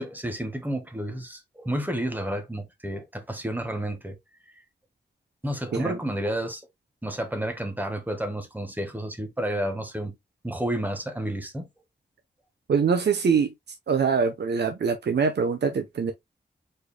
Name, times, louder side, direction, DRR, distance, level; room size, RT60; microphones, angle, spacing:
voice 1, 0.0-4.2 5.4-6.6 7.0-10.1 10.4-11.7, right 1 dB, 10° right, 1.4 m, -31 dB
voice 2, 12.7-13.5 13.9-16.1, right 6 dB, 70° right, 0.8 m, -24 dB
4.9 x 4.4 x 2.2 m
wide cardioid pair, 85°, 18 cm